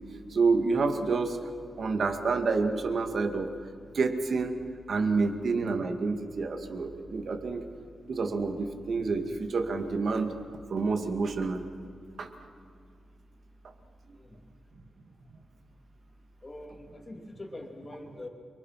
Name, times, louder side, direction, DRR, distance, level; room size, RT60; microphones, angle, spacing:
voice 1, 0.3-1.4 1.8-3.5 3.9-4.6 4.9-7.6 8.1-10.3 10.7-11.6 12.2-12.3, right 4 dB, 55° right, 6 dB, 2.1 m, -28 dB
voice 2, 16.4-18.3, left 1 dB, 20° left, 2 dB, 3.1 m, -44 dB
29.5 x 24.5 x 5.9 m, 2.3 s
wide cardioid pair, 140°, 0 cm